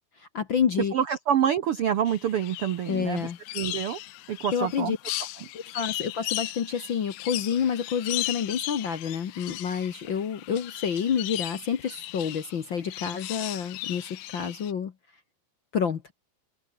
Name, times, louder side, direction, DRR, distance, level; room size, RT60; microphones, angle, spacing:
voice 1, 0.2-0.9 2.9-3.4 4.5-5.0 5.5-14.9 15.7-16.1, left 7 dB, 55° left, 1.4 m, -28 dB
voice 2, 0.9-3.3 3.5-4.0 4.3-5.0, right 9 dB, 70° right, 1.4 m, -26 dB
sound 1, 2.1-14.7, left 18 dB, 80° left, 1.7 m, -37 dB
omnidirectional pair, 3.9 m